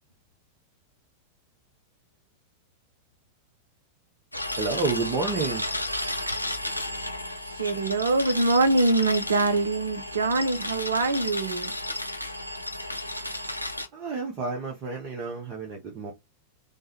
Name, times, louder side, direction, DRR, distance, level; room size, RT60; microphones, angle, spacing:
sound 1, 4.3-13.9, left 1 dB, 85° left, 0.4 m, -33 dB
voice 1, 4.6-5.7 13.9-16.1, right 4 dB, 35° right, 0.8 m, -30 dB
voice 2, 7.6-11.7, right 3 dB, 70° right, 0.5 m, -24 dB
3.4 x 2.2 x 2.8 m
figure-of-eight pair, 90°, 0 cm